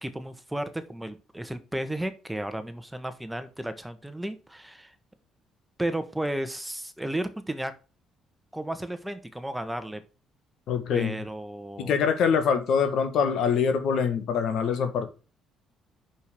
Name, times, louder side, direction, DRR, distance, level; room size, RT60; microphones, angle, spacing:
voice 1, 0.0-4.9 5.8-7.7 8.5-10.0 10.9-12.0, right 1 dB, 5° right, 1.4 m, -33 dB
voice 2, 10.7-11.2 11.8-15.1, left 6 dB, 70° left, 1.8 m, -24 dB
6.2 x 5.5 x 6.6 m
supercardioid pair, 65°, 0 cm